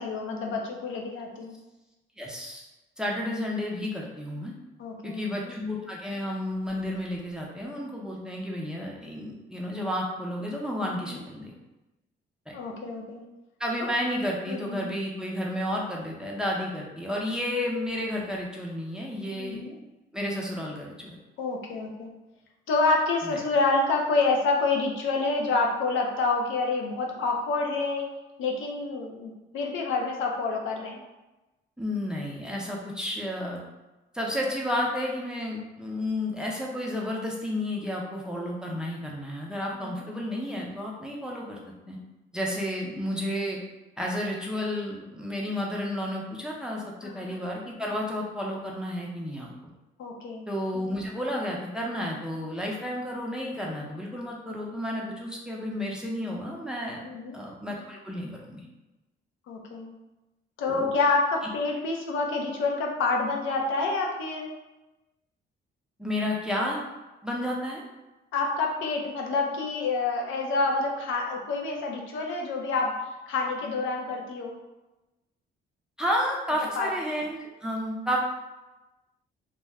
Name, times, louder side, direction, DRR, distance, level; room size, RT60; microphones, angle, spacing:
voice 1, 0.0-1.5 4.8-5.5 10.9-11.2 12.5-13.2 13.8-13.9 14.5-14.9 19.4-19.7 21.4-22.1 22.7-28.0 28.4-31.0 39.8-40.0 47.0-47.4 50.0-50.5 57.0-57.4 59.5-59.9 60.6-64.5 68.3-72.9 73.3-74.6 76.8-76.9, left 3 dB, 80° left, 0 dB, 0.6 m, -28 dB
voice 2, 2.2-2.7 3.0-4.5 5.0-11.5 12.5-12.6 13.6-19.6 20.1-21.2 23.2-23.4 31.8-33.6 34.1-41.6 41.9-42.0 42.3-43.6 44.0-49.7 50.5-58.7 60.6-60.9 66.0-66.8 67.2-67.8 76.0-78.2, left 1 dB, 5° right, -3 dB, 0.5 m, -31 dB
2.4 x 2.1 x 3.4 m, 1.1 s
cardioid pair, 90°, 20 cm